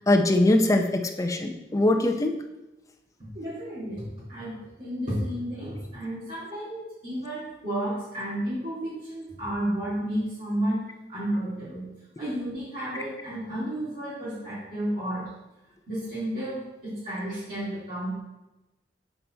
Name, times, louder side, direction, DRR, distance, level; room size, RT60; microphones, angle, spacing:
voice 1, 0.1-2.4, left 1 dB, 20° left, 5 dB, 0.6 m, -22 dB
voice 2, 3.2-11.9 12.2-15.2 15.9-18.2, right 1 dB, 50° right, -12 dB, 2.4 m, -32 dB
7.0 x 4.2 x 4.3 m, 1.0 s
head